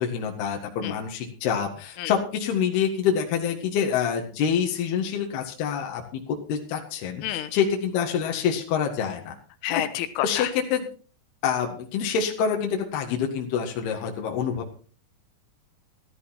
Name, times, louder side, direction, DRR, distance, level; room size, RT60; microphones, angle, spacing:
voice 1, 0.0-9.4 9.7-9.8 10.2-10.9 11.4-14.7, left 7 dB, 65° left, 2 dB, 3.5 m, -26 dB
voice 2, 9.6-10.5, left 12 dB, 85° left, 11 dB, 3.6 m, -29 dB
14.0 x 13.5 x 4.4 m, 0.39 s
omnidirectional pair, 5.5 m